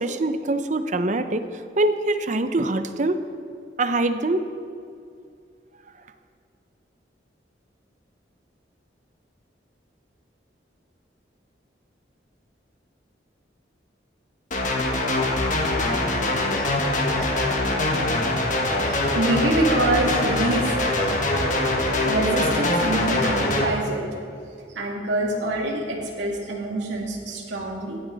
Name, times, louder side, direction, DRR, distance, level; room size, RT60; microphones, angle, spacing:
voice 1, 0.0-1.4 1.8-3.2 3.8-4.4, right 2 dB, 40° right, 9 dB, 0.6 m, -23 dB
sound 1, 14.5-23.7, left 2 dB, 45° left, 1.4 m, -23 dB
voice 2, 18.9-20.7 21.1-21.2 22.0-24.0 24.7-28.0, right 1 dB, 85° right, -1 dB, 2.2 m, -26 dB
17.0 x 9.1 x 4.0 m, 2.4 s
head